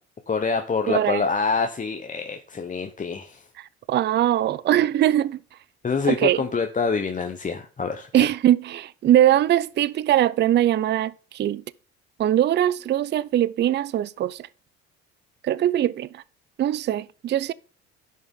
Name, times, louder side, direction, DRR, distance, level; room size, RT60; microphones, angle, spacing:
voice 1, 0.3-3.4 5.8-8.3, left 5 dB, 25° left, 0.9 m, -26 dB
voice 2, 0.9-1.2 3.9-5.4 6.1-6.4 8.1-11.6 12.2-14.4 15.4-16.2 16.6-17.5, right 12 dB, 35° right, 0.4 m, -21 dB
10.5 x 6.6 x 3.6 m
hypercardioid pair, 70°, 31 cm